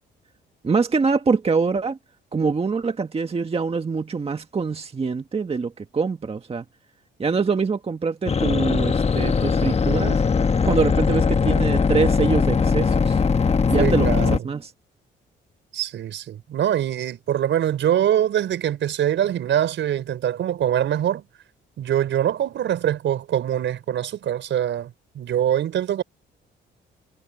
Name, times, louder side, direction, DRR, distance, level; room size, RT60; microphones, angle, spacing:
voice 1, 0.6-2.0 2.3-6.7 7.2-10.2 10.6-13.2 13.7-14.7, right 4 dB, 30° right, 1.7 m, -24 dB
sound 1, 8.3-14.4, left 5 dB, 30° left, 1.3 m, -20 dB
voice 2, 13.8-14.5 15.7-21.2 21.8-26.0, right 10 dB, 70° right, 5.2 m, -23 dB
cardioid pair, 90°, 20 cm